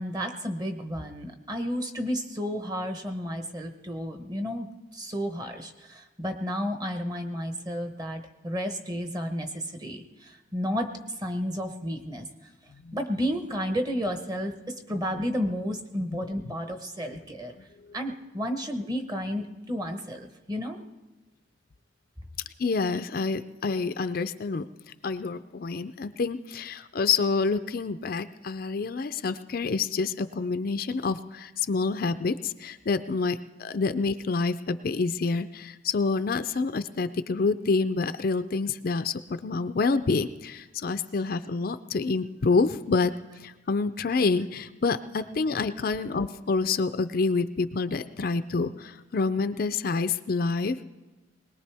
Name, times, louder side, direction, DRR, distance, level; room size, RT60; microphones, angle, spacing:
voice 1, 0.0-12.5 12.9-17.5 17.9-20.9, equal, 20° right, 6 dB, 1.0 m, -32 dB
voice 2, 22.6-24.6 25.0-43.1 43.4-50.8, left 4 dB, 50° left, 11 dB, 0.4 m, -27 dB
21.0 x 19.5 x 3.4 m, 1.2 s
head